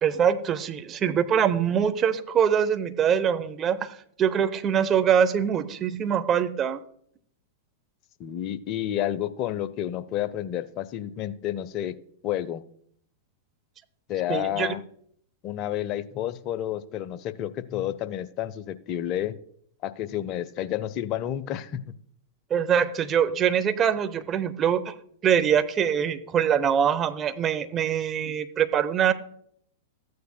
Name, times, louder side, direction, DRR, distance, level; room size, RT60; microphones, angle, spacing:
voice 1, 0.0-6.8 14.3-14.7 22.5-24.9 25.2-29.1, right 8 dB, 30° right, 10 dB, 0.8 m, -23 dB
voice 2, 8.2-11.9 12.2-12.6 14.1-14.8 15.4-19.3 19.8-21.8, left 12 dB, 40° left, 14 dB, 0.6 m, -30 dB
14.5 x 9.4 x 2.2 m, 0.65 s
hypercardioid pair, 100°, 0 cm